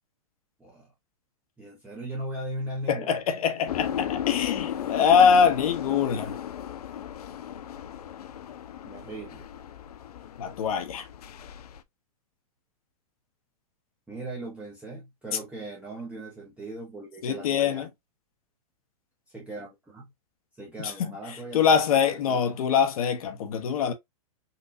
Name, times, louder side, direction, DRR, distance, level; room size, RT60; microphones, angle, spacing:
voice 1, 0.6-0.9 1.6-3.2 8.8-9.5 14.1-17.9 19.3-20.1 20.6-22.6, right 1 dB, 5° right, 0.8 m, -39 dB
voice 2, 2.9-6.3 10.4-11.1 17.2-17.9 20.8-21.1 21.5-23.9, left 7 dB, 70° left, 0.9 m, -23 dB
sound 1, 3.7-11.8, left 10 dB, 90° left, 0.5 m, -35 dB
4.0 x 2.4 x 2.5 m
hypercardioid pair, 135°, 19 cm